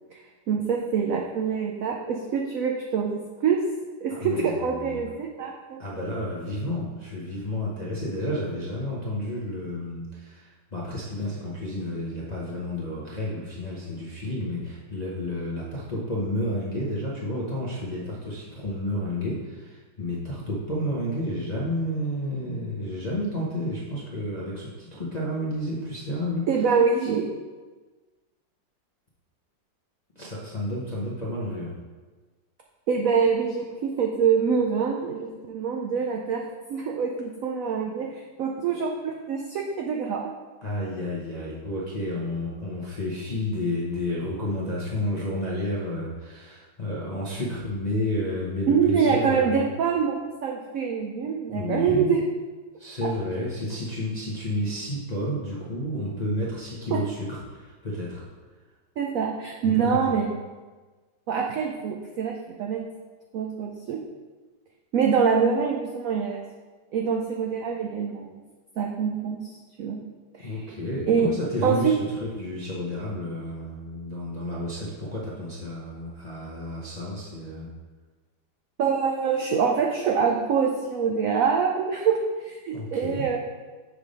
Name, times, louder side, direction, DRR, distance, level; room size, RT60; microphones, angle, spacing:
voice 1, 0.5-3.6 4.0-5.8 26.5-27.3 32.9-36.4 36.7-40.2 48.7-52.2 53.0-53.1 56.9-57.0 59.0-60.3 61.3-62.8 63.3-64.0 64.9-66.5 66.9-68.3 68.8-70.0 70.3-70.6 71.1-71.3 71.6-71.9 78.8-83.4, right 6 dB, 80° right, 1 dB, 0.7 m, -25 dB
voice 2, 4.1-5.0 5.8-26.5 30.2-31.7 40.6-49.7 51.5-52.2 52.8-58.2 59.6-60.2 70.4-77.7 82.7-83.3, left 1 dB, 40° left, -7 dB, 0.6 m, -31 dB
6.4 x 3.3 x 5.2 m, 1.3 s
omnidirectional pair, 2.0 m